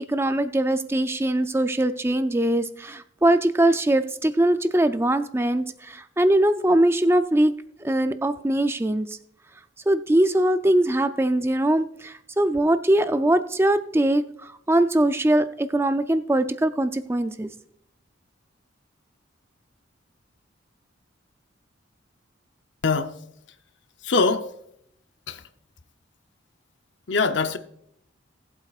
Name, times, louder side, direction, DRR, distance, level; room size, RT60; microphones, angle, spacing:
voice 1, 0.1-7.5 7.8-9.2 9.9-17.5, right 1 dB, 10° right, 0.4 m, -22 dB
voice 2, 22.8-23.2 24.0-24.5 25.3-25.4 27.1-27.6, left 4 dB, 70° left, 0.7 m, -23 dB
19.0 x 7.9 x 2.4 m
head